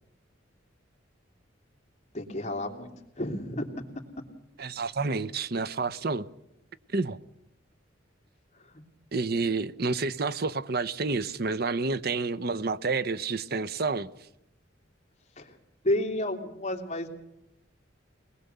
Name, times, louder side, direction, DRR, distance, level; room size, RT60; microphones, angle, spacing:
voice 1, 2.1-2.9 3.2-3.8 8.6-8.8 15.4-15.6 15.8-17.1, left 1 dB, 35° left, 2.9 m, -31 dB
voice 2, 4.6-6.3 6.9-7.2 9.1-14.1, right 3 dB, 55° right, 0.8 m, -29 dB
23.5 x 20.0 x 6.8 m
head